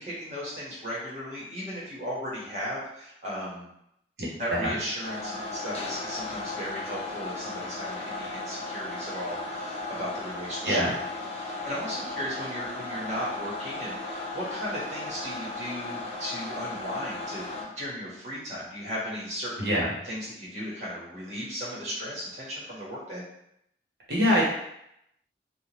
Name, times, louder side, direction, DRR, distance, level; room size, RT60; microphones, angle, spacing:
voice 1, 0.0-3.6 4.4-19.7 20.0-23.2, equal, 40° right, -7 dB, 1.3 m, -36 dB
voice 2, 4.2-4.7 10.6-10.9 19.6-19.9 24.1-24.4, equal, 65° right, -5 dB, 1.1 m, -24 dB
sound 1, 5.0-17.6, left 2 dB, 35° left, 0.6 m, -36 dB
3.4 x 2.4 x 2.9 m, 0.77 s
head